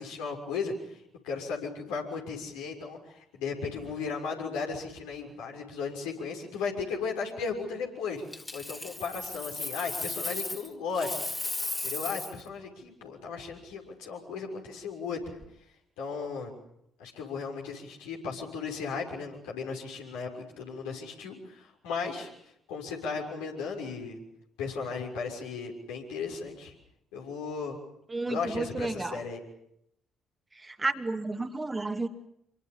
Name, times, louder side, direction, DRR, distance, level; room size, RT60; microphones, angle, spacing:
voice 1, 0.0-11.2 11.5-15.4 16.0-16.5 17.0-22.3 22.7-24.2 24.6-26.7 27.1-27.8 28.3-29.4, left 5 dB, 70° left, 0 dB, 6.2 m, -36 dB
Coin (dropping), 8.3-10.7 10.9-12.4 15.2-15.4, left 2 dB, 20° left, 3.6 m, -35 dB
voice 2, 28.1-29.2 30.5-32.1, right 2 dB, 20° right, 6 dB, 2.6 m, -32 dB
27.5 x 24.5 x 7.2 m, 0.76 s
figure-of-eight pair, 45°, 0 cm